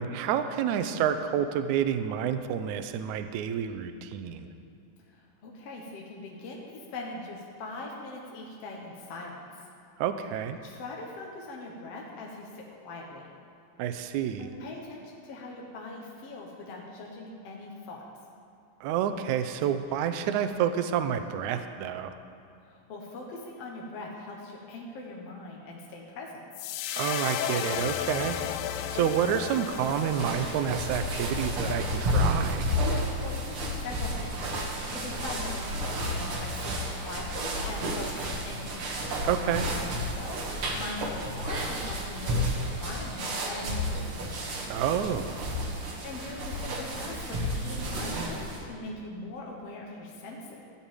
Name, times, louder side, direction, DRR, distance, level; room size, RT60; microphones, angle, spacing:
voice 1, 0.0-4.5 10.0-10.6 13.8-14.5 18.8-22.1 27.0-28.4 28.9-32.7 39.2-39.7 44.7-45.4, right 9 dB, 80° right, 8 dB, 1.7 m, -29 dB
voice 2, 5.1-9.6 10.6-13.3 14.4-18.0 22.6-26.4 33.0-38.8 39.8-44.3 46.0-50.6, left 2 dB, 55° left, -2 dB, 2.0 m, -41 dB
sound 1, 26.5-32.9, left 10 dB, 80° left, 2.3 m, -35 dB
sound 2, 29.7-48.6, equal, 50° right, 2.0 m, -31 dB
13.5 x 7.2 x 8.9 m, 2.4 s
omnidirectional pair, 4.1 m